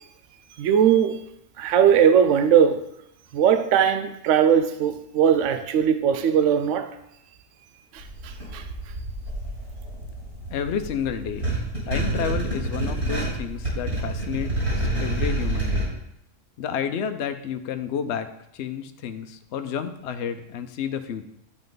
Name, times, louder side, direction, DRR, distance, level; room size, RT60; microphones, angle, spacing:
voice 1, 0.6-1.2 1.6-2.9 3.3-7.0 7.9-8.6, right 8 dB, 75° right, 0.9 m, -20 dB
sound 1, 8.0-15.9, right 1 dB, 55° right, 4.3 m, -28 dB
voice 2, 10.5-11.5 11.9-16.0 16.6-21.2, left 8 dB, 65° left, 0.9 m, -30 dB
12.0 x 5.4 x 3.9 m
omnidirectional pair, 1.3 m